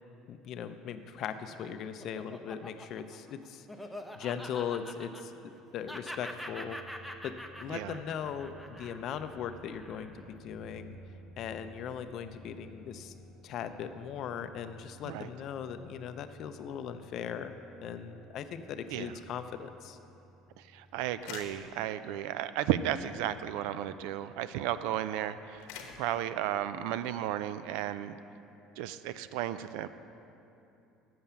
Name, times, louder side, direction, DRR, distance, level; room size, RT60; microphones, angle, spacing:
voice 1, 0.3-3.7 4.1-5.3 5.7-6.8 7.2-7.3 7.6-10.1 10.4-11.0 11.4-13.1 13.4-17.5 17.8-20.0, left 8 dB, 55° left, 9 dB, 0.5 m, -39 dB
Laughter, 1.3-5.6 5.9-10.3, equal, ahead, 0.7 m, -45 dB
sound 1, 5.4-22.1, right 1 dB, 25° right, 1.5 m, -56 dB
voice 2, 20.6-25.7 26.0-28.2 28.8-29.9, right 11 dB, 80° right, 13 dB, 0.3 m, -34 dB
sound 2, 21.1-22.2 22.6-22.8 23.1-24.1 24.5-24.7 25.3-26.5 27.3-27.4, left 6 dB, 80° left, 1.0 m, -47 dB
7.8 x 7.3 x 6.9 m, 2.8 s
supercardioid pair, 105°, 0 cm